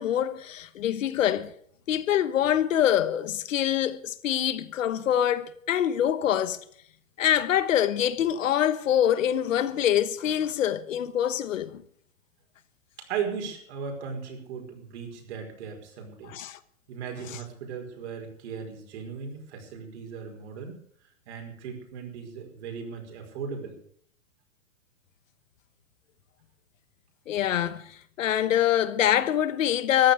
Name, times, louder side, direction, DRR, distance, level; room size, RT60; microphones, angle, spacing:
voice 1, 0.0-1.5 1.9-6.6 7.2-11.8 16.2-16.6 27.3-30.1, left 10 dB, 80° left, 1.3 m, -25 dB
voice 2, 13.0-16.3 16.9-20.8 21.3-23.8, right 6 dB, 60° right, 5.2 m, -37 dB
14.5 x 11.0 x 6.6 m
hypercardioid pair, 155°, 39 cm